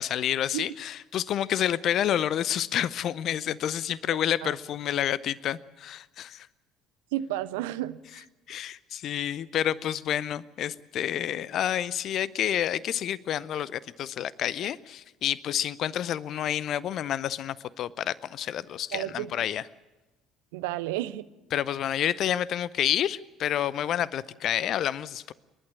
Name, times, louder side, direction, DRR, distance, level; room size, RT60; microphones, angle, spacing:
voice 1, 0.0-6.5 8.5-19.6 21.5-25.3, left 10 dB, 50° left, 20 dB, 0.6 m, -29 dB
voice 2, 7.1-8.2 18.9-19.3 20.5-21.3, right 14 dB, 65° right, 14 dB, 0.7 m, -32 dB
28.0 x 11.5 x 10.0 m, 1.1 s
figure-of-eight pair, 55°, 0 cm